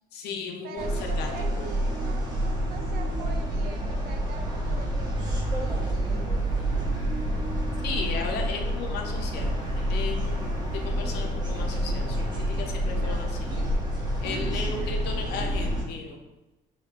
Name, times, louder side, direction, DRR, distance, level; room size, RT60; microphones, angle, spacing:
voice 1, 0.1-0.9 1.2-1.3 1.5-1.6 7.8-13.5 14.2-16.2, left 4 dB, 75° left, 3 dB, 0.6 m, -35 dB
voice 2, 0.6-6.3 10.0-10.6 14.2-14.9, right 4 dB, 65° right, 5 dB, 0.5 m, -44 dB
sound 1, 0.8-15.8, equal, 25° right, 0.8 m, -28 dB
sound 2, 5.4-15.2, left 3 dB, 5° left, 0.5 m, -45 dB
4.4 x 2.1 x 2.3 m, 1.1 s
cardioid pair, 110°, 17 cm